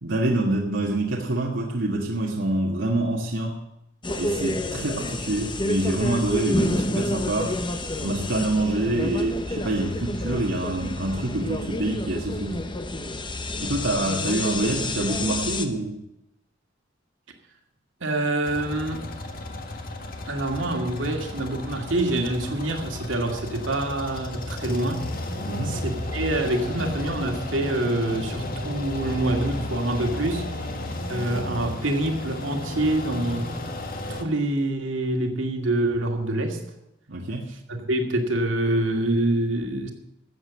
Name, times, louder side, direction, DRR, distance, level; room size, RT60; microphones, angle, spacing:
voice 1, 0.0-3.6 4.2-7.5 8.0-12.6 13.6-16.0 25.5-25.8 37.1-37.5, right 2 dB, 70° right, -2 dB, 1.7 m, -26 dB
sound 1, 4.0-15.7, left 1 dB, 25° left, 1.0 m, -29 dB
voice 2, 18.0-19.0 20.3-25.0 25.7-30.4 31.1-33.5 34.1-36.6 37.7-39.9, right 1 dB, 90° right, 3 dB, 2.2 m, -26 dB
sound 2, 18.4-34.2, left 1 dB, 50° left, 1.7 m, -33 dB
13.0 x 8.0 x 8.4 m, 0.84 s
head